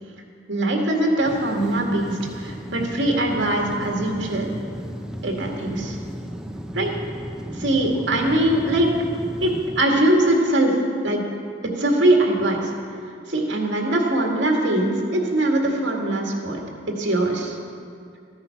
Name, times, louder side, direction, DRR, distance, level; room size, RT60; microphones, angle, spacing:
voice 1, 0.5-4.5 5.2-6.0 6.7-6.9 7.5-8.9 9.4-10.7 11.0-11.2 11.8-12.7 13.3-16.6 16.9-17.6, right 1 dB, 75° right, 0 dB, 2.0 m, -21 dB
sound 1, 1.2-9.8, equal, 5° right, 0.5 m, -35 dB
14.5 x 9.4 x 5.8 m, 2.3 s
head